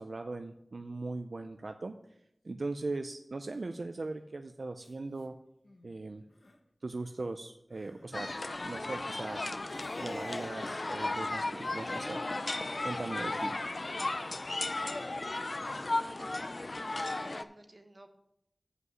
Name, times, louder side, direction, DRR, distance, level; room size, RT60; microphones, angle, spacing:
voice 1, 0.0-2.0 2.4-5.3 5.8-6.3 6.8-9.4 10.0-12.2 12.8-13.6, right 3 dB, 80° right, 7 dB, 0.4 m, -39 dB
Crying sobbing, 4.0-4.2 4.8-4.9 5.2-5.3 5.6-5.9 6.3-6.6 7.7-10.8, left 2 dB, 75° left, 1.0 m, -51 dB
sound 1, 8.1-17.4, left 2 dB, 60° left, 0.4 m, -35 dB
voice 2, 15.9-18.2, right 1 dB, 45° right, 6 dB, 1.1 m, -53 dB
7.8 x 5.5 x 6.1 m, 0.78 s
wide cardioid pair, 55°, 0 cm